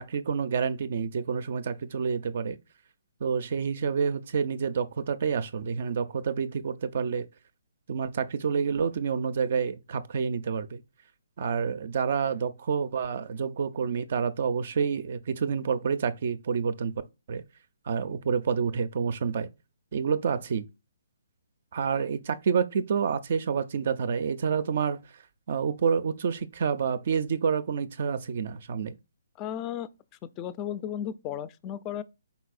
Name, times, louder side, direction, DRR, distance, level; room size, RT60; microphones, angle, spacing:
voice 1, 0.0-2.6 3.2-7.3 7.9-10.8 11.4-16.9 17.3-17.4 17.9-19.5 19.9-20.6 21.7-25.0 25.5-28.9, right 6 dB, 55° right, 0.4 m, -28 dB
voice 2, 29.4-29.9 30.4-32.0, left 10 dB, 25° left, 0.3 m, -34 dB
4.6 x 4.1 x 2.4 m
hypercardioid pair, 145°, 0 cm